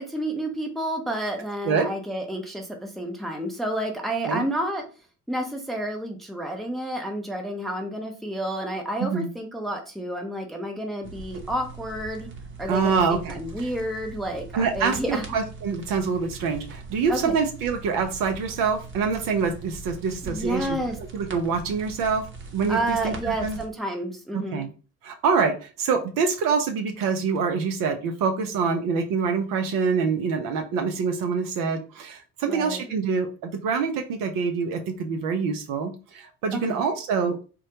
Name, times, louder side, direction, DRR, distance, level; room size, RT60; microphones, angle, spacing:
voice 1, 0.0-4.8 5.3-12.3 12.6-15.3 17.1-17.4 20.3-21.0 22.7-24.6 32.5-33.0 36.5-36.9, right 1 dB, ahead, 3 dB, 0.6 m, -30 dB
sound 1, 11.0-23.7, right 3 dB, 25° right, 0.9 m, -41 dB
voice 2, 12.7-13.4 14.5-22.2 22.5-23.6 24.3-24.7 25.0-37.4, right 5 dB, 45° right, 5 dB, 0.6 m, -25 dB
3.6 x 2.1 x 2.8 m, 0.35 s
figure-of-eight pair, 50°, 46 cm